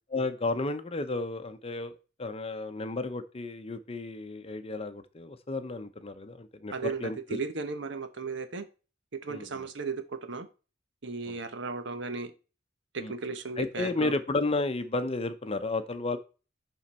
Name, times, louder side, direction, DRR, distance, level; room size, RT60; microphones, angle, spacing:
voice 1, 0.1-1.9 2.2-7.4 9.3-9.6 11.3-11.4 13.0-13.1 13.6-16.2, left 2 dB, 30° left, 10 dB, 0.7 m, -32 dB
voice 2, 6.7-8.7 9.1-10.5 11.0-12.3 12.9-14.1, right 4 dB, 65° right, 10 dB, 1.0 m, -35 dB
11.0 x 3.9 x 4.3 m, 0.34 s
head